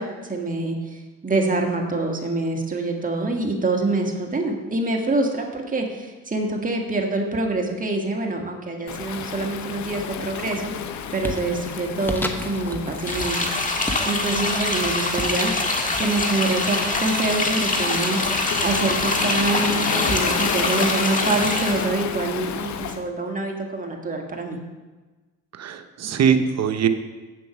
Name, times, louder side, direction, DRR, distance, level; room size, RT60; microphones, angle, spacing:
voice 1, 0.0-15.5 16.0-24.6, right 2 dB, 25° right, 1 dB, 1.7 m, -26 dB
Waves surf, 8.9-23.0, left 8 dB, 70° left, 0.7 m, -31 dB
sound 1, 10.0-10.4 10.8-17.4, left 1 dB, 5° left, 1.0 m, -35 dB
sound 2, 13.1-21.9, left 2 dB, 25° left, 1.6 m, -24 dB
voice 2, 25.5-26.9, right 7 dB, 60° right, 8 dB, 0.9 m, -21 dB
8.3 x 7.7 x 6.1 m, 1.2 s
cardioid pair, 90°, 30 cm